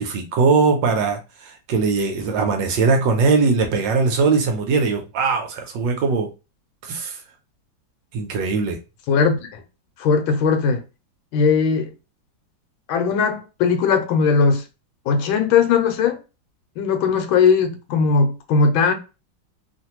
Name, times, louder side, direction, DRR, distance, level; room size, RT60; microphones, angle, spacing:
voice 1, 0.0-6.3 6.8-7.2 8.1-8.8, right 4 dB, 70° right, 1.2 m, -20 dB
voice 2, 9.1-9.6 10.0-10.8 11.3-11.9 12.9-14.6 15.1-16.2 16.8-18.9, left 5 dB, 80° left, 1.4 m, -19 dB
3.2 x 2.6 x 2.8 m
omnidirectional pair, 2.2 m